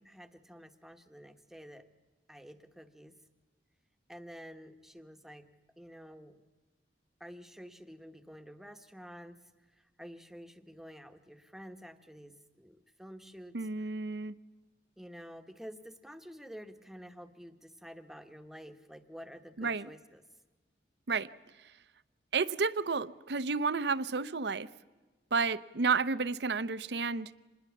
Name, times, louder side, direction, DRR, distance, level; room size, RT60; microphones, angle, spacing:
voice 1, 0.0-1.9 2.3-3.2 4.1-5.5 5.8-6.4 7.2-9.4 9.7-13.9 15.0-20.2, equal, ahead, 8 dB, 1.1 m, -50 dB
voice 2, 13.5-14.4 19.6-19.9 21.1-21.3 22.3-24.7 25.3-27.3, right 4 dB, 70° right, 16 dB, 0.7 m, -31 dB
26.0 x 20.5 x 7.2 m, 1.3 s
head